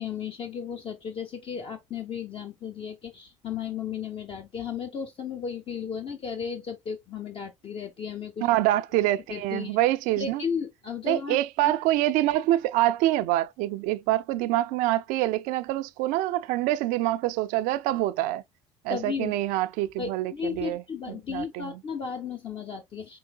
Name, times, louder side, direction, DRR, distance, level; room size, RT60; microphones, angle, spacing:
voice 1, 0.0-8.5 9.3-9.8 10.2-11.7 18.9-19.3 20.0-23.2, left 6 dB, 35° left, 0.7 m, -34 dB
voice 2, 8.4-10.4 11.0-18.4 18.8-20.8 21.3-21.7, right 15 dB, 60° right, 0.4 m, -25 dB
4.7 x 3.1 x 2.3 m
hypercardioid pair, 65°, 16 cm